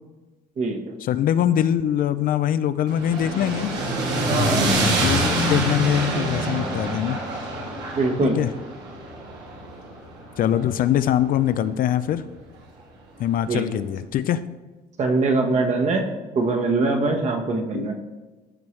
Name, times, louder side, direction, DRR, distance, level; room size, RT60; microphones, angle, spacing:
voice 1, 1.0-3.7 5.0-7.2 8.2-8.5 10.4-12.2 13.2-14.4 17.7-17.9, left 10 dB, 55° left, 13 dB, 0.4 m, -23 dB
sound 1, 2.9-11.1, right 1 dB, 90° right, 2.5 m, -25 dB
voice 2, 4.3-4.7 8.0-8.4 13.5-13.6 15.0-16.1 16.3-17.9, right 3 dB, 40° right, 3 dB, 1.2 m, -22 dB
14.0 x 4.6 x 3.2 m, 1.2 s
cardioid pair, 110°, 17 cm